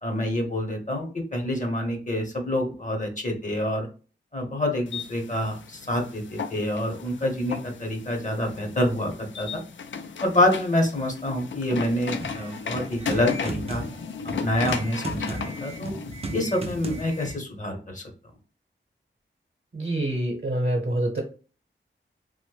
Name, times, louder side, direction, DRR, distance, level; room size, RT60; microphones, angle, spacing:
voice 1, 0.0-3.9 4.3-9.6 10.2-13.8 14.4-15.9 16.3-18.0, left 1 dB, 40° left, 3 dB, 0.8 m, -27 dB
sound 1, 4.9-17.3, left 5 dB, 70° left, 0.4 m, -36 dB
sound 2, 12.2-17.4, right 2 dB, 30° right, 0.4 m, -36 dB
voice 2, 19.7-21.2, right 1 dB, 55° right, -1 dB, 0.8 m, -26 dB
3.0 x 2.1 x 3.2 m, 0.36 s
wide cardioid pair, 95°, 20 cm